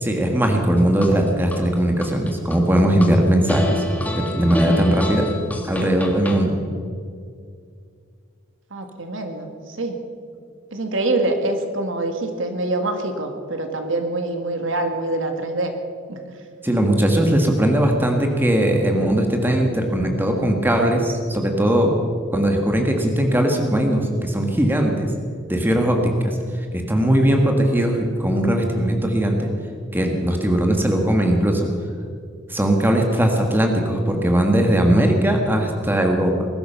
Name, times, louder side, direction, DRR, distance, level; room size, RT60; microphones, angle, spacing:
voice 1, 0.0-3.8 4.2-5.3 5.6-6.6 16.6-22.0 22.3-25.1 25.5-29.5 29.9-31.7 32.5-36.5, right 1 dB, 10° right, 3 dB, 1.6 m, -19 dB
sound 1, 0.5-1.6 2.0-3.1 3.5-6.4, left 1 dB, 10° left, 1.6 m, -28 dB
voice 2, 8.7-10.0 10.7-15.7 16.1-16.2, right 2 dB, 70° right, 5 dB, 1.8 m, -25 dB
20.0 x 12.0 x 5.7 m, 2.2 s
head